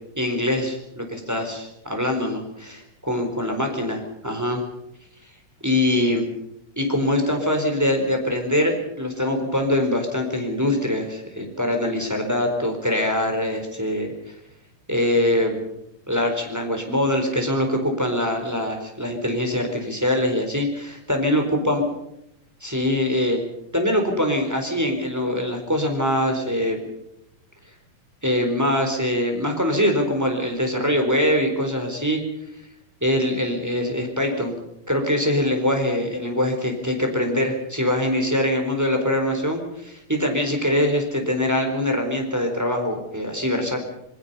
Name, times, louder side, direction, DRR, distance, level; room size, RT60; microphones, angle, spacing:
voice 1, 0.2-4.6 5.6-6.3 6.8-14.1 14.9-15.6 16.1-21.8 22.6-23.4 23.7-26.8 28.2-32.2 33.0-34.6 34.9-43.9, left 1 dB, 5° right, 2 dB, 3.7 m, -23 dB
27.0 x 21.0 x 5.6 m, 0.81 s
omnidirectional pair, 3.9 m